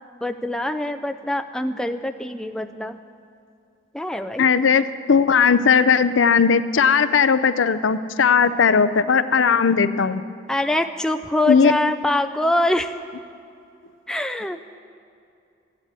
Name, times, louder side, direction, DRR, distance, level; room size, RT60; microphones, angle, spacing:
voice 1, 0.2-3.0 3.9-4.5 10.5-12.9 14.1-14.6, left 1 dB, 5° left, 7 dB, 0.3 m, -24 dB
voice 2, 4.4-10.2 11.5-11.7, left 6 dB, 85° left, 13 dB, 0.5 m, -17 dB
14.0 x 9.8 x 8.3 m, 2.6 s
head